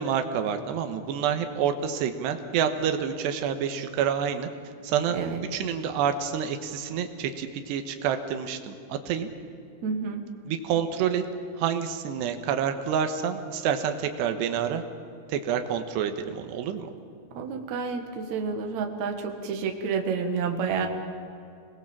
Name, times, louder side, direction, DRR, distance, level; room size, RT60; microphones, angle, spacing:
voice 1, 0.0-4.5 4.8-5.2 5.5-9.3 10.5-11.2 11.6-14.8 15.3-16.9, right 8 dB, 90° right, 7 dB, 3.3 m, -28 dB
voice 2, 9.8-10.2 17.3-20.9, right 5 dB, 50° right, 4 dB, 2.7 m, -29 dB
27.0 x 20.5 x 7.4 m, 2.6 s
omnidirectional pair, 4.8 m